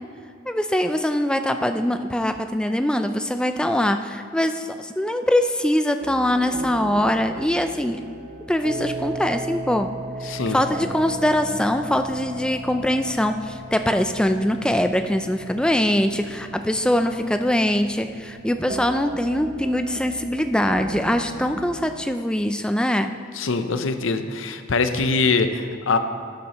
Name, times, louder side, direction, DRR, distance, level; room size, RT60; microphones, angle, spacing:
voice 1, 0.5-8.0 8.5-9.9 10.2-23.1, left 1 dB, 5° left, 7 dB, 0.3 m, -22 dB
sound 1, 6.0-22.1, right 1 dB, 45° right, 0.6 m, -36 dB
voice 2, 10.2-10.6 23.3-26.0, left 4 dB, 75° left, 8 dB, 0.7 m, -23 dB
13.0 x 9.4 x 3.0 m, 2.3 s
head